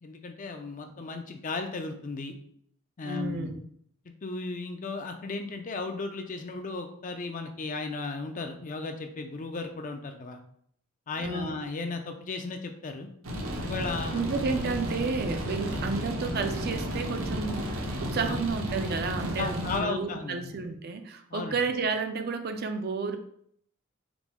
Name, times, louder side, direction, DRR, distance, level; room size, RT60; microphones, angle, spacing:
voice 1, 0.0-2.3 3.0-3.5 4.2-10.4 11.1-13.1 13.7-14.2 15.7-15.9 18.2-18.4 19.4-20.6 21.3-21.6, left 3 dB, 40° left, 6 dB, 0.4 m, -35 dB
voice 2, 3.0-3.6 11.2-11.6 14.1-23.2, right 4 dB, 50° right, 7 dB, 0.4 m, -31 dB
sound 1, 13.2-19.8, equal, 75° right, 0.9 m, -33 dB
4.9 x 2.1 x 3.6 m, 0.66 s
head